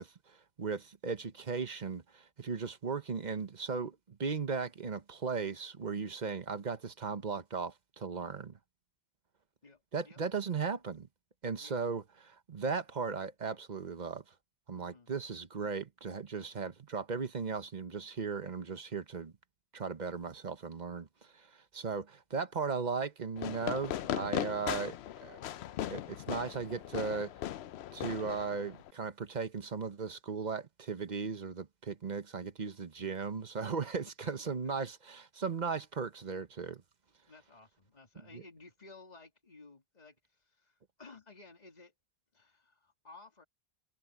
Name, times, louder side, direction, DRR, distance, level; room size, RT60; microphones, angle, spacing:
voice 1, 0.0-8.6 9.9-11.1 11.4-14.2 14.7-19.3 19.7-24.9 25.2-25.4 25.9-27.3 27.9-36.8 38.3-38.4, right 5 dB, 45° right, 1.1 m, -37 dB
voice 2, 9.6-10.2 11.6-11.8 14.7-15.1 33.7-34.1 37.3-41.9 42.3-43.4, left 3 dB, 40° left, 2.5 m, -56 dB
Fireworks, 23.4-28.9, left 11 dB, 85° left, 0.9 m, -38 dB
omnidirectional pair, 1.1 m